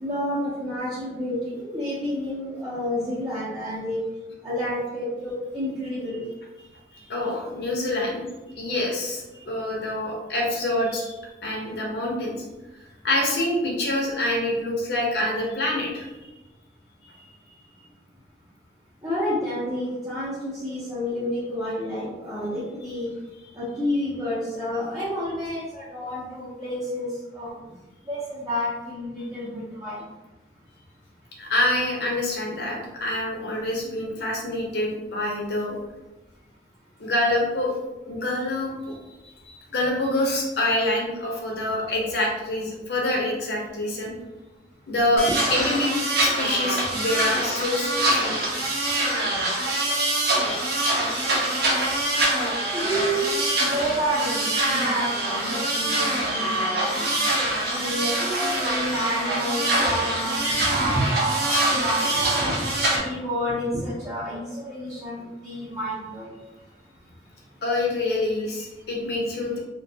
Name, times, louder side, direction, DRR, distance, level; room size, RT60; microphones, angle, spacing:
voice 1, 0.0-4.0 4.4-6.2 19.0-23.1 23.5-27.5 28.1-30.0 52.7-57.1 57.6-62.7 63.0-66.4, equal, 20° right, -12 dB, 0.6 m, -29 dB
voice 2, 6.9-8.3 8.6-12.3 13.0-16.1 17.0-17.3 31.4-35.8 37.0-37.7 38.1-39.0 39.2-44.1 44.9-45.9 46.2-48.4 67.6-69.6, left 1 dB, 65° left, -2 dB, 0.7 m, -26 dB
sound 1, 45.2-63.0, right 1 dB, 60° right, 0.6 m, -24 dB
2.4 x 2.2 x 2.7 m, 1.1 s
head